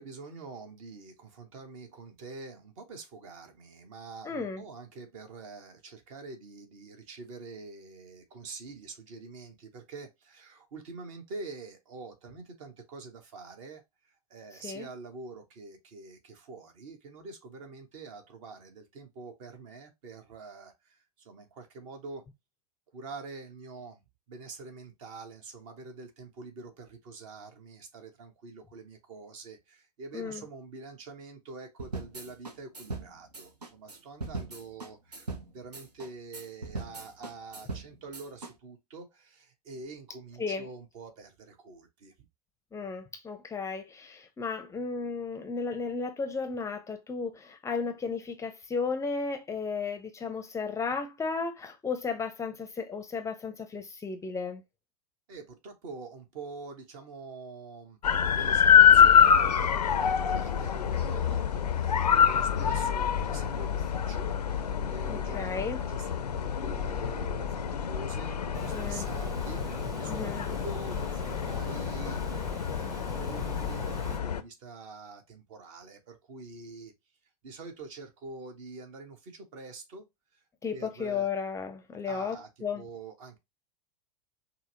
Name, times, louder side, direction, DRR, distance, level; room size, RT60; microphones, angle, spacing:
voice 1, 0.0-22.2 22.9-24.0 24.3-42.1 55.3-72.4 72.8-76.9 77.4-80.1 80.3-80.4 80.7-81.3 82.0-82.5 82.7-83.4, right 3 dB, 55° right, 1.2 m, -46 dB
voice 2, 4.2-4.6 14.6-14.9 30.1-30.4 40.4-40.6 42.7-54.6 65.1-65.8 68.7-69.1 70.1-70.5 80.6-82.8, left 5 dB, 15° left, 0.5 m, -34 dB
sound 1, 31.8-38.5, right 3 dB, 85° right, 0.6 m, -40 dB
sound 2, 58.0-74.4, left 8 dB, 80° left, 0.5 m, -26 dB
Water, 68.5-74.2, right 3 dB, 15° right, 0.7 m, -43 dB
5.5 x 2.0 x 2.7 m
figure-of-eight pair, 85°, 20 cm